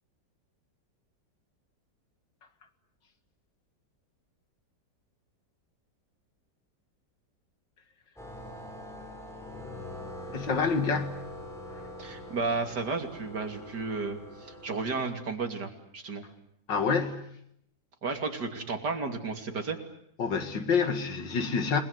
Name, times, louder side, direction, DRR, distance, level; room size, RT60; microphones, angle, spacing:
sound 1, 8.2-15.1, left 1 dB, ahead, 5.3 m, -43 dB
voice 1, 10.3-11.2 11.7-11.9 16.7-17.3 20.2-21.8, left 5 dB, 80° left, 2.8 m, -28 dB
voice 2, 12.0-16.2 18.0-19.8, right 4 dB, 65° right, 3.4 m, -33 dB
29.5 x 20.5 x 9.6 m
omnidirectional pair, 1.9 m